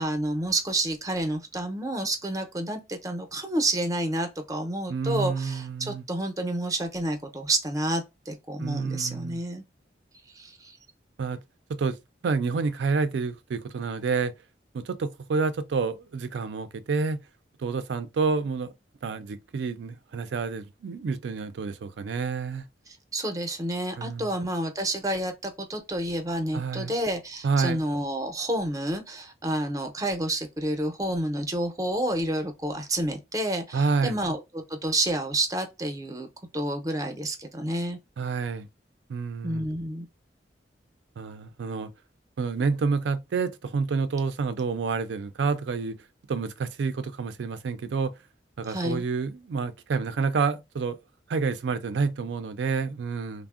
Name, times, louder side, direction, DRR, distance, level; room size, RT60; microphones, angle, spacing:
voice 1, 0.0-9.6 10.3-10.8 23.1-36.3 36.5-38.0 39.4-40.1 48.7-49.0, right 1 dB, 20° right, 0.5 m, -29 dB
voice 2, 4.9-6.0 8.6-9.4 11.2-11.4 11.7-12.0 12.2-14.3 14.7-17.2 17.6-18.7 19.0-22.7 24.0-24.3 26.5-26.9 27.4-27.8 33.7-34.2 38.2-38.7 39.1-39.7 41.2-41.9 42.4-46.0 46.3-48.2 48.6-51.0 51.3-53.5, right 4 dB, 80° right, 0.4 m, -28 dB
3.4 x 2.0 x 2.3 m
head